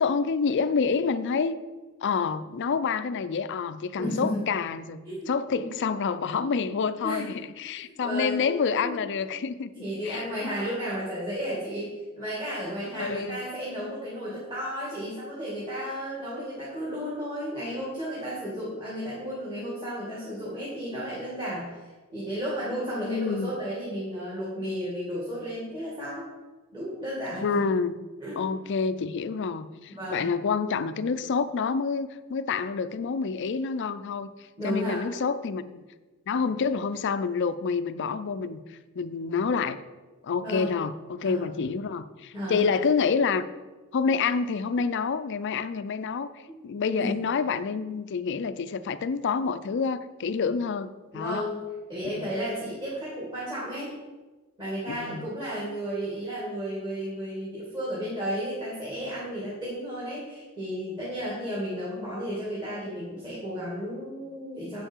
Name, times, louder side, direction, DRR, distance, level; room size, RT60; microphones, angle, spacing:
voice 1, 0.0-1.6 2.0-9.7 10.0-10.2 13.0-13.4 23.0-23.5 27.4-28.0 28.4-34.3 34.6-35.8 36.3-39.8 40.2-43.4 43.9-46.3 46.6-51.4 52.1-52.3 54.9-55.3, left 5 dB, 55° left, 13 dB, 0.4 m, -28 dB
voice 2, 4.0-4.4 5.0-5.8 6.4-6.5 7.0-7.3 7.8-8.4 8.8-9.0 9.8-26.2 26.7-27.4 28.2-28.4 29.9-30.3 34.6-35.0 40.4-40.7 41.2-41.5 42.3-42.7 47.0-47.1 51.1-51.6 51.9-53.9 54.6-64.8, equal, 20° right, -7 dB, 2.2 m, -33 dB
8.2 x 6.6 x 4.5 m, 1.3 s
head